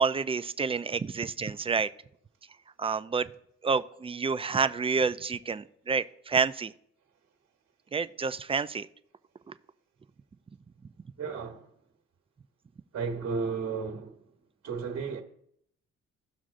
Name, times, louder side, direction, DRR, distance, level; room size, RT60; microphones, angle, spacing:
voice 1, 0.0-1.9 2.8-3.3 3.6-6.7 7.9-8.9, right 5 dB, 20° right, 0.4 m, -28 dB
voice 2, 11.2-11.7 12.9-14.3 14.6-15.2, right 5 dB, 55° right, 1.3 m, -33 dB
17.0 x 6.1 x 2.5 m
cardioid pair, 90°, 30 cm